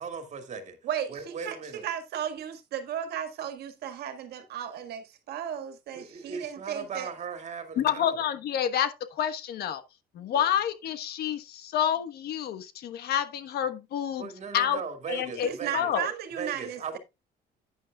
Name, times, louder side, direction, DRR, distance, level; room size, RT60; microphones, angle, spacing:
voice 1, 0.0-0.8 1.1-1.8 5.9-8.2 10.3-10.4 14.2-15.9 16.4-17.0, right 5 dB, 45° right, 2.3 m, -38 dB
voice 2, 0.8-7.1 15.4-17.0, right 9 dB, 70° right, 1.8 m, -35 dB
voice 3, 7.8-9.8 10.1-14.8 15.1-16.1, left 9 dB, 70° left, 1.2 m, -29 dB
11.0 x 9.5 x 2.3 m
cardioid pair, 110°, 17 cm